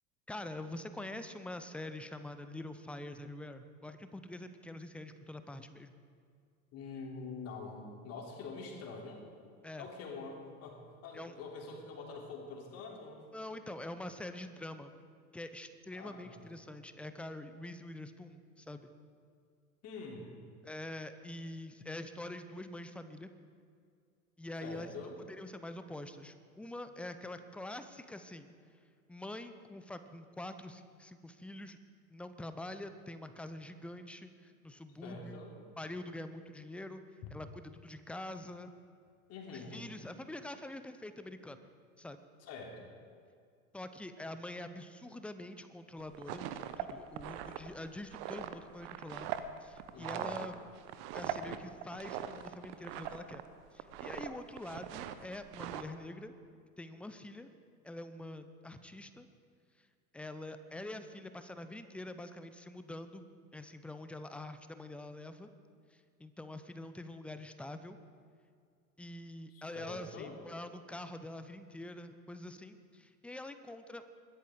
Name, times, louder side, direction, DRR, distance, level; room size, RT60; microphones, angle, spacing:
voice 1, 0.3-5.9 9.6-9.9 11.1-11.3 13.3-14.9 15.3-18.9 20.6-23.3 24.4-24.9 25.3-28.5 29.1-31.8 32.1-35.4 35.8-37.0 37.3-38.7 39.5-41.6 42.0-42.2 43.7-46.5 46.8-49.3 49.6-50.5 51.1-53.4 53.7-56.3 56.8-57.5 57.8-59.3 59.8-59.9 60.1-63.3 63.5-65.5 65.9-68.0 69.0-74.1, left 1 dB, 5° left, 10 dB, 0.6 m, -45 dB
voice 2, 6.7-9.2 9.8-13.2 15.9-16.5 19.8-20.4 24.6-25.2 35.0-35.5 39.3-39.8 42.4-42.9 49.9-50.5 69.5-70.3, left 4 dB, 35° left, 0 dB, 3.4 m, -45 dB
sound 1, 46.0-53.5 53.7-54.3 54.6-55.8, right 10 dB, 40° right, 0.9 m, -41 dB
21.5 x 15.5 x 3.8 m, 2.2 s
figure-of-eight pair, 85°, 45 cm